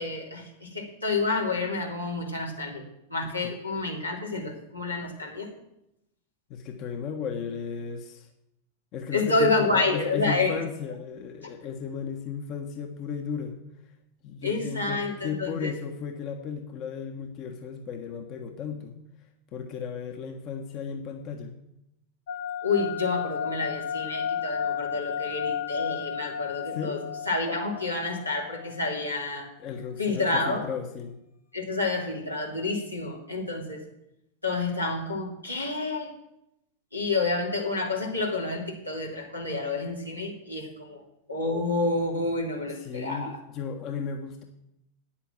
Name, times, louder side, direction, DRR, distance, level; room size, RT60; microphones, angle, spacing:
voice 1, 0.0-2.8 3.1-5.5 9.1-10.6 14.4-15.7 22.6-27.0 27.3-29.5 30.0-30.6 31.5-33.8 34.4-36.1 36.9-41.0 41.3-43.4, left 3 dB, 85° left, -2 dB, 3.0 m, -29 dB
voice 2, 6.5-8.3 8.9-13.6 14.2-18.9 19.5-21.5 26.7-27.0 29.6-31.1 42.8-44.4, left 6 dB, 35° left, 4 dB, 1.4 m, -35 dB
sound 1, 22.3-28.9, left 8 dB, 55° left, 1.4 m, -33 dB
9.4 x 8.9 x 7.5 m, 0.85 s
figure-of-eight pair, 90°, 0 cm